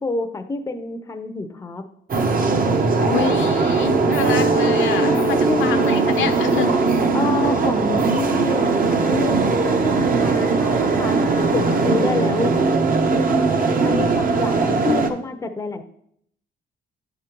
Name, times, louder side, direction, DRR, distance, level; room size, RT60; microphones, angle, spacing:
voice 1, 0.0-1.8 4.9-5.8 7.1-12.5 13.2-15.8, left 3 dB, 15° left, 7 dB, 0.6 m, -27 dB
sound 1, 2.1-15.1, right 4 dB, 45° right, 0.7 m, -20 dB
voice 2, 3.0-6.7 11.7-12.3 13.4-14.0, left 8 dB, 75° left, 7 dB, 0.8 m, -27 dB
sound 2, 4.2-9.3, right 2 dB, 90° right, 1.7 m, -27 dB
9.0 x 5.1 x 3.0 m, 0.70 s
cardioid pair, 90°, 20 cm